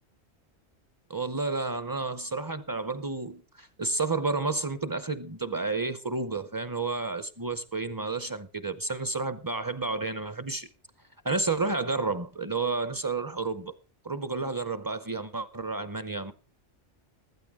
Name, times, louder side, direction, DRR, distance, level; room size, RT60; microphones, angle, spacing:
voice 1, 1.1-10.7 11.2-13.7 14.0-16.3, right 3 dB, 25° right, 0.6 m, -31 dB
15.0 x 13.0 x 3.6 m
omnidirectional pair, 1.1 m